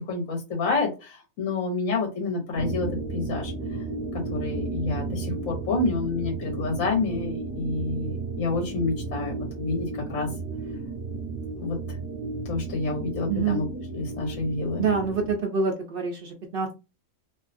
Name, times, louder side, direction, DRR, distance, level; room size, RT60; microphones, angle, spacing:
voice 1, 0.1-3.5 4.3-10.3 11.6-11.8 12.5-13.6 13.9-14.9, left 3 dB, 70° left, 0 dB, 1.2 m, -28 dB
sound 1, 2.6-15.4, right 3 dB, 10° right, 0.9 m, -33 dB
voice 2, 13.3-13.6 14.8-16.7, right 5 dB, 65° right, 3 dB, 0.6 m, -26 dB
2.5 x 2.2 x 2.4 m, 0.28 s
omnidirectional pair, 1.4 m